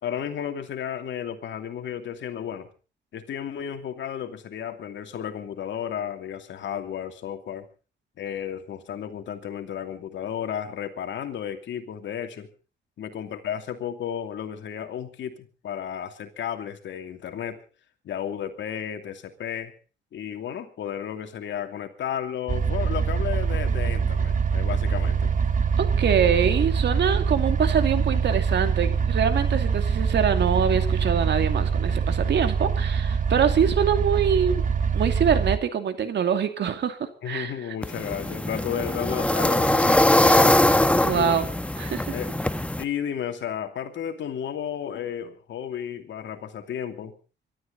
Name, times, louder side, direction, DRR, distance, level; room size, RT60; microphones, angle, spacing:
voice 1, 0.0-2.7 3.1-7.7 8.2-12.5 13.0-17.6 18.0-19.7 20.1-25.3 37.2-40.6 41.1-41.4 42.1-42.3 42.8-47.2, left 9 dB, 70° left, 6 dB, 2.7 m, -33 dB
sound 1, 22.5-35.6, right 6 dB, 40° right, 1.5 m, -24 dB
voice 2, 25.8-34.6 34.9-37.5 41.0-41.5 41.8-42.2, right 7 dB, 60° right, 8 dB, 2.5 m, -24 dB
sound 2, 37.8-42.8, left 1 dB, 5° left, 1.2 m, -21 dB
24.5 x 13.0 x 4.1 m, 0.35 s
cardioid pair, 90°, 20 cm